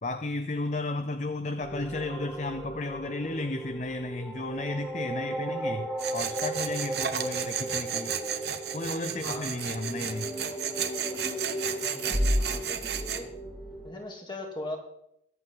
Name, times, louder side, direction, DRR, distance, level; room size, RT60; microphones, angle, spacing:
voice 1, 0.0-8.2 8.7-10.3, left 2 dB, 40° left, 9 dB, 0.7 m, -33 dB
sound 1, 1.6-13.9, equal, ahead, 2.3 m, -34 dB
Tools, 6.0-13.2, right 9 dB, 70° right, 1.0 m, -33 dB
voice 2, 9.2-9.6 11.8-13.3 13.8-14.8, left 1 dB, 25° left, 1 dB, 2.5 m, -40 dB
22.5 x 7.9 x 3.9 m, 0.75 s
head